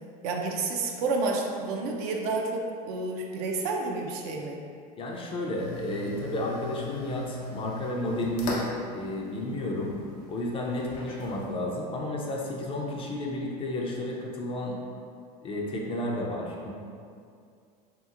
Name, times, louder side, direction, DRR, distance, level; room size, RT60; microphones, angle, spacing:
voice 1, 0.2-4.6, right 3 dB, 70° right, 1 dB, 0.4 m, -30 dB
voice 2, 5.0-10.0 10.3-14.8 15.4-16.7, left 1 dB, 25° left, -1 dB, 0.4 m, -32 dB
sound 1, 5.6-11.5, left 2 dB, 75° left, 0.6 m, -39 dB
2.8 x 2.5 x 2.4 m, 2.3 s
supercardioid pair, 110°, 20 cm